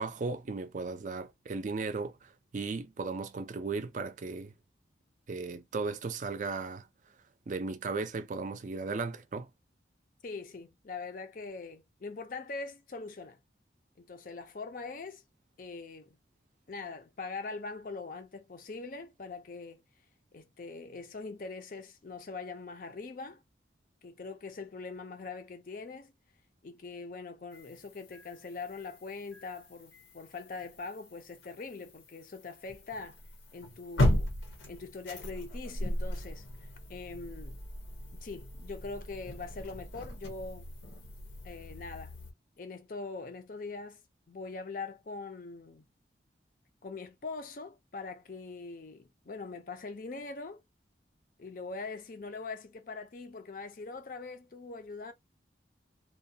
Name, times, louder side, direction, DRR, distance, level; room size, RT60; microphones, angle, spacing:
voice 1, 0.0-4.5 5.3-6.9 7.5-9.5, right 4 dB, 40° right, 0.4 m, -36 dB
voice 2, 10.2-13.4 14.0-15.2 15.6-16.2 16.7-19.8 20.3-23.4 24.0-26.1 26.6-33.2 33.5-34.3 34.7-36.5 36.9-37.6 38.2-40.7 41.4-42.1 42.6-44.0 44.3-45.8 46.8-50.6 51.4-55.1, left 4 dB, 45° left, 0.5 m, -42 dB
sound 1, 27.5-42.3, left 1 dB, 85° left, 0.9 m, -37 dB
2.4 x 2.2 x 2.7 m
head